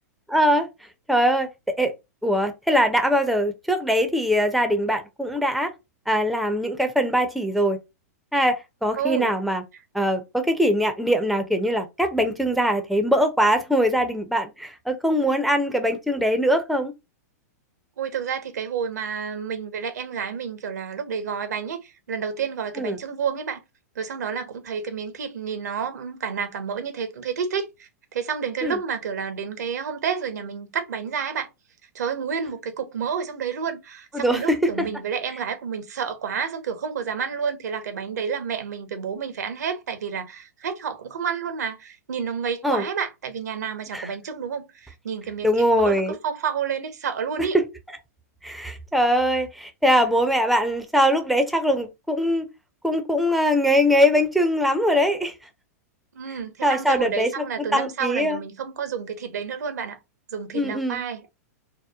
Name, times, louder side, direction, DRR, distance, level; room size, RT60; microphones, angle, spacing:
voice 1, 0.3-0.7 1.1-1.9 2.2-5.7 6.1-7.8 8.3-9.6 9.9-16.9 22.8-23.0 28.6-28.8 34.1-34.6 42.6-42.9 43.9-44.1 45.4-46.2 47.5-47.6 48.4-52.5 52.8-55.3 56.6-57.4 57.7-58.4 60.5-61.0, equal, ahead, 0.4 m, -22 dB
voice 2, 9.0-9.3 18.0-23.6 24.0-31.5 31.9-47.6 56.1-60.0 60.3-61.3, right 6 dB, 80° right, 0.7 m, -30 dB
2.8 x 2.0 x 2.3 m
hypercardioid pair, 125°, 9 cm